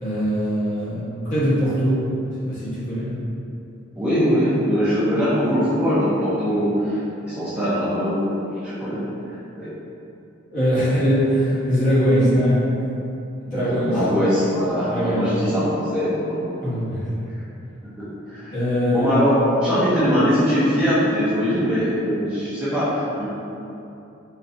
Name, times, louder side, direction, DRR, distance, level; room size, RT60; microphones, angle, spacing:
voice 1, 0.0-2.1 2.4-3.2 10.5-12.7 13.4-14.0 14.9-15.3 16.6-17.0 18.5-19.3, equal, 40° left, -12 dB, 1.1 m, -21 dB
voice 2, 4.0-8.4 8.6-9.0 9.3-9.7 13.5-16.7 18.0-18.6 18.9-23.3, equal, 5° right, -13 dB, 0.5 m, -22 dB
4.1 x 2.3 x 2.6 m, 2.8 s
head